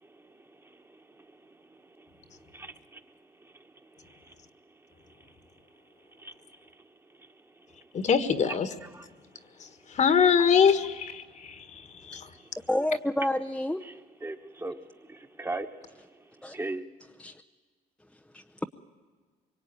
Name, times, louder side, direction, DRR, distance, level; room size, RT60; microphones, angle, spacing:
voice 1, 2.5-3.0 6.2-6.3 8.9-9.0 14.2-14.8 15.1-15.7 16.5-16.8, right 2 dB, 15° right, 6 dB, 1.5 m, -36 dB
voice 2, 7.9-8.7 9.9-12.2, left 7 dB, 45° left, 11 dB, 1.6 m, -24 dB
voice 3, 12.7-13.9 14.2-14.3 16.4-16.5 17.2-17.4 18.1-18.6, left 1 dB, 5° left, 5 dB, 0.7 m, -30 dB
24.0 x 23.5 x 9.6 m, 1.5 s
cardioid pair, 110°, 17 cm